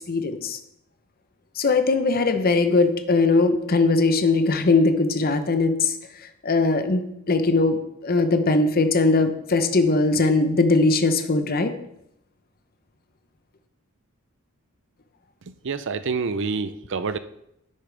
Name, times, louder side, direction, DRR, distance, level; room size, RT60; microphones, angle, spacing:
voice 1, 0.1-0.6 1.6-5.9 6.4-7.0 7.3-7.8 8.0-11.7, left 3 dB, 45° left, 8 dB, 0.8 m, -20 dB
voice 2, 15.6-17.2, right 4 dB, 60° right, 13 dB, 0.6 m, -27 dB
11.0 x 8.7 x 3.4 m, 0.79 s
head